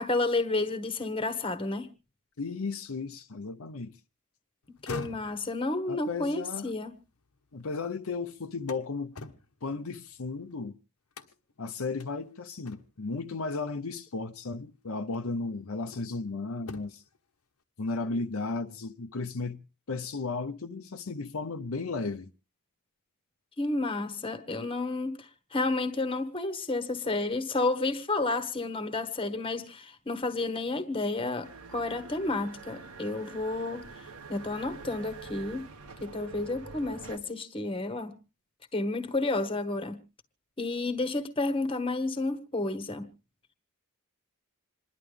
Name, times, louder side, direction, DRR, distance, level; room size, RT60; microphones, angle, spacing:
voice 1, 0.0-1.9 4.8-6.9 23.6-35.7 36.0-38.2 38.7-40.0 40.6-43.1, left 2 dB, 25° left, 1.3 m, -31 dB
voice 2, 2.4-4.0 5.9-6.7 7.5-9.2 9.6-10.7 11.6-17.0 17.8-19.6 19.9-22.3, left 3 dB, 70° left, 0.8 m, -34 dB
sound 1, 4.6-7.8 8.2-10.6 11.1-11.6 12.0-12.1 12.6-13.2 14.4-14.5 15.1-16.2 16.6-17.2, left 3 dB, 85° left, 1.2 m, -45 dB
sound 2, 31.4-37.2, right 4 dB, 85° right, 1.7 m, -46 dB
27.0 x 11.0 x 3.3 m
head